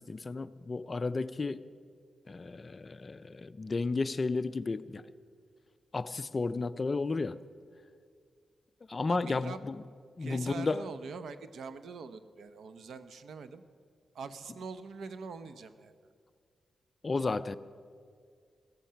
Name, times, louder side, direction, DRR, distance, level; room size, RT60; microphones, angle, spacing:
voice 1, 0.0-1.6 2.3-5.0 5.9-7.4 8.9-9.8 10.2-10.9 17.0-17.5, left 3 dB, 35° left, 0.4 m, -33 dB
voice 2, 9.1-9.6 10.2-13.6 14.1-15.9, right 5 dB, 75° right, 0.8 m, -43 dB
15.0 x 15.0 x 5.7 m
wide cardioid pair, 110°, 0 cm